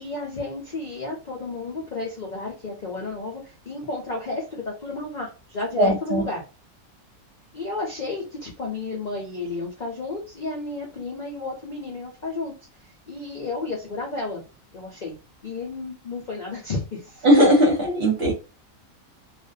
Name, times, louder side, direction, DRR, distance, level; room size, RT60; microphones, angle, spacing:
voice 1, 0.0-6.4 7.5-12.5 13.1-14.4 14.7-15.2 15.4-17.3 17.6-17.7, left 3 dB, 60° left, -1 dB, 0.4 m, -32 dB
voice 2, 5.8-6.2 17.2-18.3, equal, 50° right, 0 dB, 1.0 m, -18 dB
2.5 x 2.2 x 2.6 m, 0.31 s
omnidirectional pair, 1.5 m